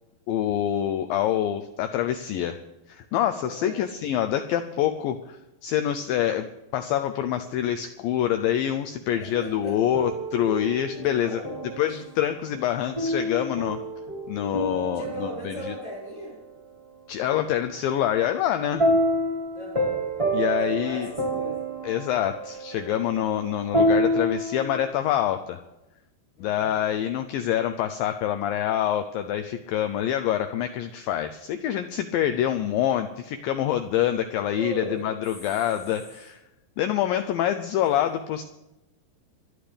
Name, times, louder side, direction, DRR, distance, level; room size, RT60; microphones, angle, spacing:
voice 1, 0.3-2.6 2.9-5.4 5.6-11.4 11.8-13.8 14.3-15.7 17.1-18.9 20.3-21.1 21.8-25.6 26.4-36.4 36.8-38.4, left 11 dB, 90° left, 7 dB, 2.0 m, -26 dB
voice 2, 3.4-3.8 9.2-9.8 11.0-11.8 14.9-16.4 19.5-20.0 20.6-21.6 26.4-26.8 34.5-35.0 37.8-37.9, equal, 40° left, -6 dB, 7.1 m, -38 dB
sound 1, 9.3-12.0 13.0-16.3 18.8-24.8, equal, 20° right, 0.8 m, -28 dB
28.0 x 11.5 x 3.5 m, 0.98 s
omnidirectional pair, 4.7 m